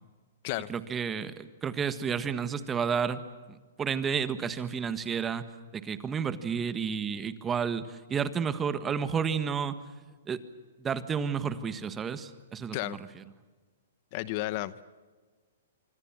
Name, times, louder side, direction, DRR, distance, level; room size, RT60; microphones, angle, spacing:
voice 1, 0.7-3.2 3.5-5.5 5.7-9.8 10.3-10.4 10.8-13.2, right 6 dB, 15° right, 12 dB, 1.6 m, -31 dB
voice 2, 14.1-14.8, left 17 dB, 40° left, 16 dB, 0.9 m, -33 dB
25.5 x 25.0 x 7.5 m, 1.4 s
hypercardioid pair, 145°, 0 cm